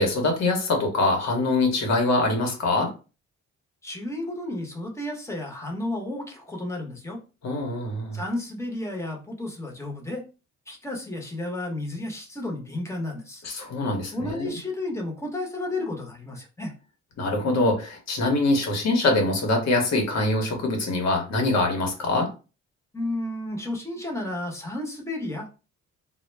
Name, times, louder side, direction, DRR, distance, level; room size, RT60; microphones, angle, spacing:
voice 1, 0.0-2.9 7.4-8.2 13.4-14.6 17.2-22.3, left 2 dB, 60° left, 2 dB, 1.0 m, -24 dB
voice 2, 3.8-7.2 8.1-10.2 10.7-13.4 14.1-16.7 22.9-25.5, left 1 dB, 10° left, 0 dB, 0.9 m, -32 dB
2.2 x 2.0 x 3.2 m, 0.32 s
cardioid pair, 90°, 30 cm